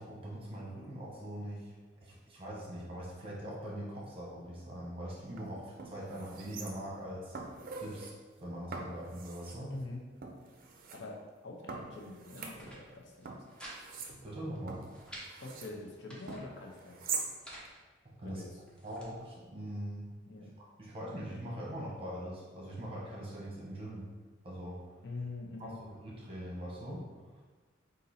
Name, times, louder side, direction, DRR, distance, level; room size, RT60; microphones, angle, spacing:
voice 1, 0.0-1.7 2.0-7.4 7.8-8.1 8.4-9.7 14.2-14.8 18.0-18.4 18.8-20.1 20.8-24.0 24.4-24.9 25.6-27.4, equal, 30° right, -5 dB, 1.1 m, -42 dB
sound 1, 5.2-5.4 5.8-7.0 7.3-8.1 8.7-9.6 10.2-11.0 11.7-13.0 13.3-15.7 16.3-17.3 17.6-17.7, right 5 dB, 50° right, 0.5 m, -43 dB
voice 2, 9.7-10.0 10.9-13.4 15.4-17.1 18.2-18.5 20.3-20.5 25.0-25.8, left 2 dB, 65° left, 0 dB, 0.7 m, -44 dB
sound 2, 12.4-12.8 13.2-13.8 14.1-14.2 14.5-15.3 15.8-16.4 17.1-17.7 18.3-19.1, right 1 dB, 5° left, 0.8 m, -50 dB
3.9 x 2.6 x 4.1 m, 1.3 s
head